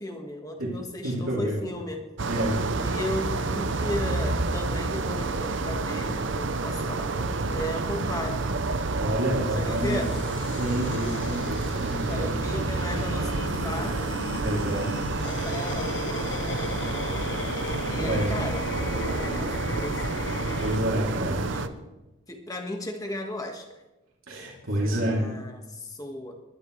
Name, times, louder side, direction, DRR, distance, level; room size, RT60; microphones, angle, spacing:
voice 1, 0.0-2.0 2.8-8.4 9.6-10.1 11.9-14.2 15.2-17.2 17.9-18.6 19.0-20.3 21.5-21.7 22.3-23.6 24.8-26.3, left 1 dB, 15° left, 2 dB, 1.7 m, -35 dB
voice 2, 1.0-1.7 2.3-2.6 8.9-10.0 10.5-12.3 14.4-15.0 18.0-18.4 20.6-21.5 24.3-25.2, right 1 dB, 75° right, -5 dB, 3.0 m, -28 dB
sound 1, 2.2-21.7, right 3 dB, 60° right, 0.7 m, -29 dB
sound 2, 9.4-20.8, left 4 dB, 60° left, 0.6 m, -36 dB
21.0 x 11.5 x 3.3 m, 1.0 s
head